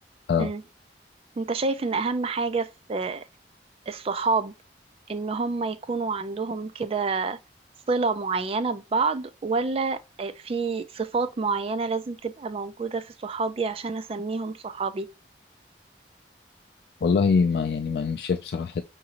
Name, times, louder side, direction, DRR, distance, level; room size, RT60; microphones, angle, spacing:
voice 1, 1.4-3.2 3.9-4.5 5.1-7.4 7.9-15.1, right 4 dB, 35° right, 0.3 m, -28 dB
voice 2, 17.0-18.8, left 5 dB, 65° left, 0.4 m, -23 dB
5.8 x 2.6 x 2.9 m
head